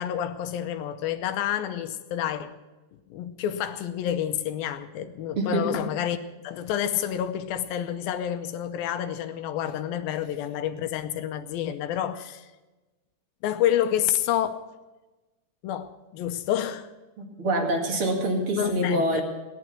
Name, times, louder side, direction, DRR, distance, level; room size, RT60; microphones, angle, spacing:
voice 1, 0.0-2.6 3.1-6.2 6.4-12.5 13.4-14.6 15.6-16.9 18.6-19.2, left 10 dB, 80° left, 2.4 m, -29 dB
voice 2, 5.4-5.8 17.2-19.2, right 1 dB, 40° right, 2.5 m, -26 dB
17.5 x 11.5 x 6.0 m
omnidirectional pair, 4.4 m